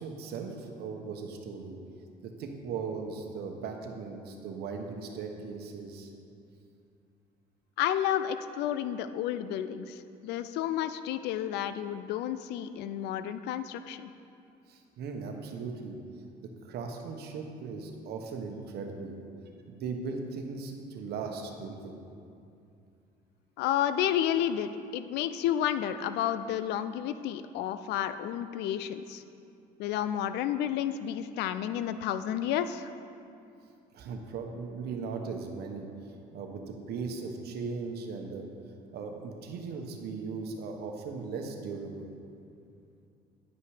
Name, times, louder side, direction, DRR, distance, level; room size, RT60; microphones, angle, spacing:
voice 1, 0.0-1.8 2.2-6.1 14.7-16.0 16.4-19.1 19.7-22.0 33.9-35.9 36.3-38.5 38.9-42.1, right 4 dB, 70° right, 3 dB, 1.0 m, -38 dB
voice 2, 7.8-14.1 23.6-29.2 29.8-32.9, left 10 dB, 80° left, 11 dB, 0.4 m, -31 dB
9.8 x 5.6 x 4.9 m, 2.5 s
cardioid pair, 110°, 17 cm